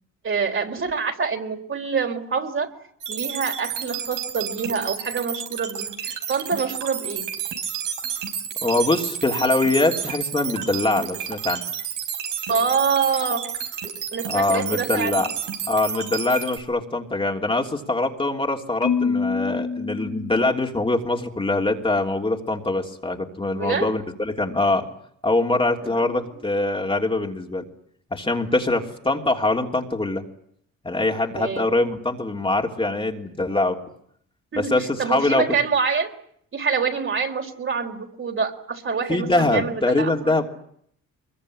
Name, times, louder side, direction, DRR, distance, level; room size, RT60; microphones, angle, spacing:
voice 1, 0.2-2.7 3.1-7.2 12.5-13.4 14.1-15.2 23.5-23.9 25.8-25.9 31.4-31.7 34.5-34.7 35.0-36.1 36.5-40.4, right 5 dB, 40° right, 3 dB, 4.2 m, -26 dB
sound 1, 3.0-16.6, right 8 dB, 90° right, 5.4 m, -31 dB
voice 2, 8.6-11.6 14.2-15.3 15.7-24.9 25.2-27.6 28.1-30.2 30.8-33.8 34.5-35.4 39.1-40.4, left 2 dB, 15° left, 2 dB, 3.2 m, -23 dB
Marimba xylophone, 18.8-21.0, left 5 dB, 75° left, 3.0 m, -26 dB
24.0 x 22.5 x 9.9 m, 0.68 s
cardioid pair, 90°, 30 cm